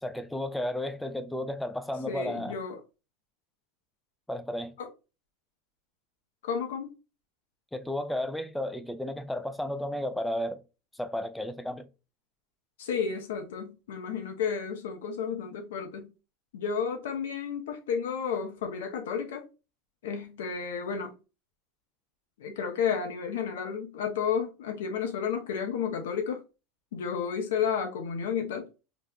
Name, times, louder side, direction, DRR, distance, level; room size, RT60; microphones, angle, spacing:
voice 1, 0.0-2.6 4.3-4.7 7.7-10.6 10.9-11.9, left 1 dB, 5° left, 0.5 m, -33 dB
voice 2, 2.1-2.8 4.8-4.9 6.4-6.9 12.8-16.1 16.5-19.5 20.0-21.1 22.4-26.4 26.9-28.7, left 6 dB, 80° left, 0.8 m, -32 dB
3.0 x 2.4 x 3.6 m
hypercardioid pair, 100°, 0 cm